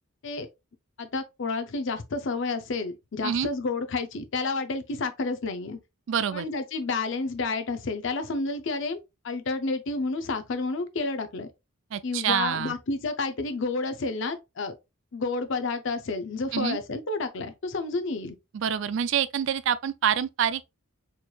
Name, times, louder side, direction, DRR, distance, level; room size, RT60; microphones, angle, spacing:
voice 1, 1.0-5.8 6.3-9.0 9.2-11.5 12.0-14.8 15.1-18.4, left 3 dB, 60° left, 0.5 m, -30 dB
voice 2, 6.1-6.5 11.9-12.7 16.5-16.8 18.5-20.7, right 8 dB, 60° right, 0.4 m, -26 dB
4.4 x 3.1 x 2.3 m
head